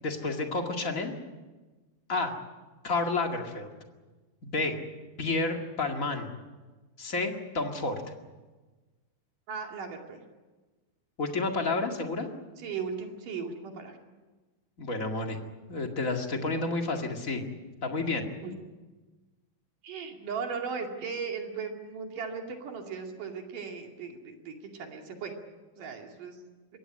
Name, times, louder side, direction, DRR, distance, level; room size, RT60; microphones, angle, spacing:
voice 1, 0.0-1.1 2.1-2.4 2.8-3.7 4.4-4.8 5.2-6.3 7.0-8.0 11.2-12.3 14.8-15.4 15.7-17.4 17.8-18.3, left 3 dB, 30° left, 3 dB, 1.8 m, -30 dB
voice 2, 9.5-10.2 12.6-14.0 18.4-18.5 19.8-25.3 25.8-26.4, right 5 dB, 65° right, 2 dB, 3.9 m, -37 dB
23.0 x 17.5 x 9.9 m, 1.3 s
omnidirectional pair, 4.2 m